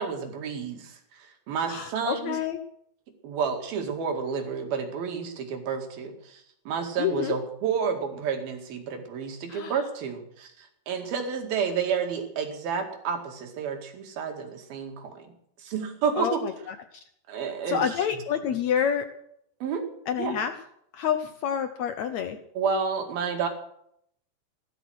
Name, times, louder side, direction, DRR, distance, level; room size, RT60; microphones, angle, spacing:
voice 1, 0.0-2.4 3.2-16.4 17.3-18.0 18.5-18.6 19.6-19.8 20.2-20.4 22.6-23.5, right 6 dB, 75° right, 4 dB, 4.0 m, -30 dB
voice 2, 1.7-2.6 7.0-7.4 9.5-9.7 16.2-16.5 17.7-19.1 20.1-20.5 20.9-22.4, left 8 dB, 85° left, 9 dB, 1.6 m, -28 dB
17.0 x 12.5 x 6.3 m, 0.71 s
omnidirectional pair, 4.3 m